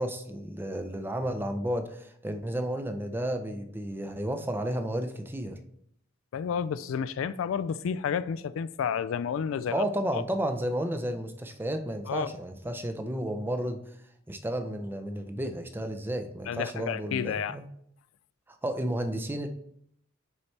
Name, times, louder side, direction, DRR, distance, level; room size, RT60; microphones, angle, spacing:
voice 1, 0.0-5.6 9.7-13.9 14.3-17.6 18.5-19.5, right 1 dB, 10° right, 0.6 m, -32 dB
voice 2, 6.3-9.8 10.1-10.2 12.1-12.3 16.5-17.6, left 7 dB, 75° left, 0.3 m, -31 dB
11.0 x 4.2 x 3.3 m
head